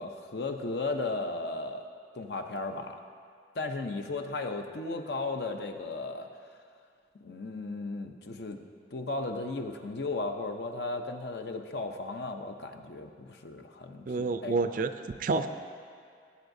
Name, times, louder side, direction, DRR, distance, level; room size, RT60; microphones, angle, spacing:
voice 1, 0.0-1.8 2.1-3.0 3.5-6.3 7.2-8.6 8.9-14.6, left 3 dB, 65° left, 5 dB, 0.6 m, -35 dB
voice 2, 14.1-14.9 15.2-15.5, right 3 dB, 50° right, 9 dB, 0.4 m, -28 dB
16.5 x 8.1 x 2.7 m, 2.2 s
head